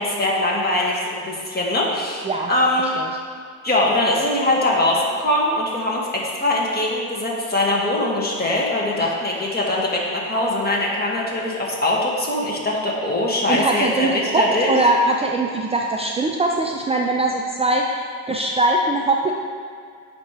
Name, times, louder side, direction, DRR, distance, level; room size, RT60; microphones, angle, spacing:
voice 1, 0.0-2.9 3.6-14.7, left 1 dB, 25° left, -3 dB, 1.5 m, -22 dB
voice 2, 13.5-19.3, right 2 dB, 15° right, 0 dB, 0.4 m, -21 dB
8.4 x 3.0 x 4.7 m, 2.3 s
supercardioid pair, 80°, 35 cm